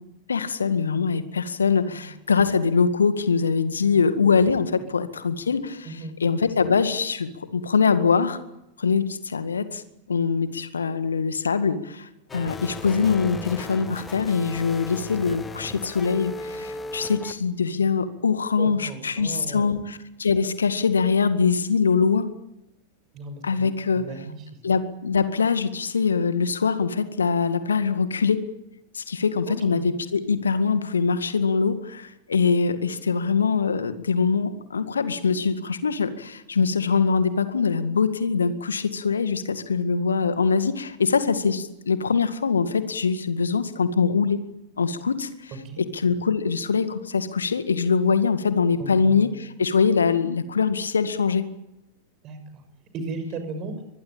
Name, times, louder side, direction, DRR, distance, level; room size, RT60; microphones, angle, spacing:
voice 1, 0.3-5.9 6.2-8.4 8.8-9.8 10.1-22.3 23.4-24.0 24.6-28.4 28.9-44.4 44.8-45.5 45.8-51.5, left 5 dB, 70° left, 11 dB, 1.9 m, -23 dB
sound 1, 12.3-17.3, left 3 dB, 15° left, 2.0 m, -36 dB
voice 2, 18.6-19.7 23.1-23.7 23.9-24.5 29.5-29.9 45.5-45.8 48.8-49.4 52.2-52.6 52.9-53.7, right 3 dB, 35° right, 8 dB, 6.4 m, -36 dB
24.0 x 21.5 x 8.9 m, 0.89 s
figure-of-eight pair, 90°, 0 cm